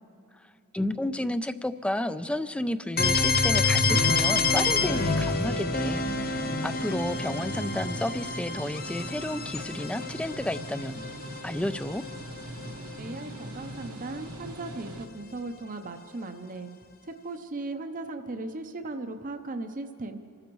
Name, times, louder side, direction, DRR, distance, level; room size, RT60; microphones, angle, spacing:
voice 1, 0.7-11.0 11.4-12.0, left 1 dB, 5° left, 13 dB, 0.3 m, -31 dB
sound 1, 3.0-12.7, left 3 dB, 45° left, 0.7 m, -28 dB
sound 2, 4.9-15.1, right 1 dB, 70° right, 1.2 m, -41 dB
voice 2, 13.0-16.7 17.2-20.2, right 2 dB, 35° right, 6 dB, 0.6 m, -37 dB
27.5 x 13.5 x 3.1 m, 2.6 s
head